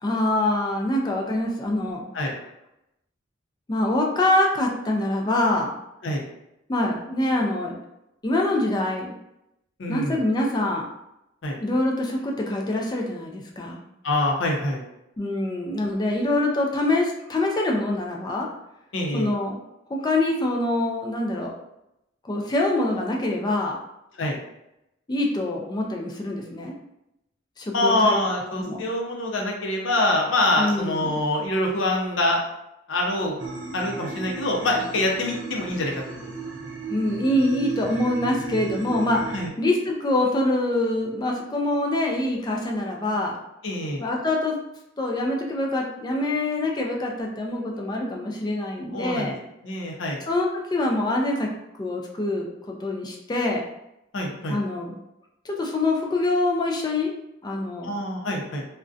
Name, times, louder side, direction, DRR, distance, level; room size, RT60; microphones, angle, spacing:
voice 1, 0.0-2.0 3.7-5.7 6.7-7.8 8.2-9.1 9.9-10.9 11.6-13.8 15.2-18.5 19.1-19.6 19.9-21.5 22.2-23.8 25.1-26.7 27.6-28.2 28.6-28.8 30.5-31.1 36.9-43.3 44.0-44.6 45.0-49.3 50.2-51.5 51.8-53.6 54.5-54.9 55.4-57.1 57.4-57.9, left 1 dB, 20° left, 0 dB, 0.3 m, -25 dB
voice 2, 9.8-10.2 11.4-11.6 14.0-14.8 18.9-19.3 24.2-24.4 27.7-32.4 32.9-33.4 33.7-36.3 39.3-39.5 43.6-44.0 48.9-50.2 54.1-54.6 57.8-58.6, left 1 dB, 80° left, 0 dB, 0.6 m, -25 dB
sound 1, 33.4-39.5, right 4 dB, 70° right, 0.5 m, -36 dB
2.5 x 2.1 x 2.4 m, 0.86 s
head